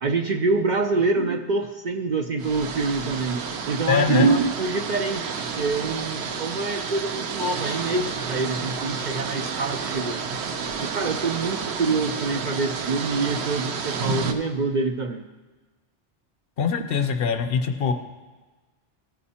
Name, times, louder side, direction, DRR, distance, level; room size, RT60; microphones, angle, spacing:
voice 1, 0.0-5.3 5.6-10.4 10.8-15.2, right 3 dB, 55° right, 4 dB, 0.6 m, -26 dB
sound 1, 2.4-14.3, right 5 dB, 75° right, 0.9 m, -30 dB
voice 2, 3.9-4.3 16.6-17.9, left 6 dB, 60° left, 7 dB, 0.8 m, -22 dB
15.0 x 5.2 x 4.2 m, 1.3 s
omnidirectional pair, 1.1 m